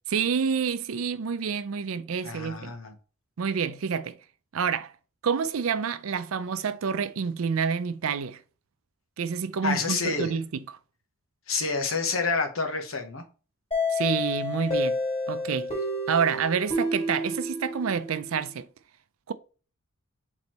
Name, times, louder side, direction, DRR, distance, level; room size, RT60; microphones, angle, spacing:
voice 1, 0.1-2.7 3.4-4.2 4.5-4.9 5.2-8.4 9.2-10.8 13.9-15.0 15.3-15.7 16.1-18.7 19.3-19.4, right 6 dB, 90° right, 0.5 m, -28 dB
voice 2, 2.2-2.9 9.6-10.3 11.5-13.2, left 4 dB, 80° left, 1.0 m, -28 dB
sound 1, 13.7-18.4, left 1 dB, 30° left, 2.0 m, -30 dB
4.4 x 4.0 x 3.0 m
head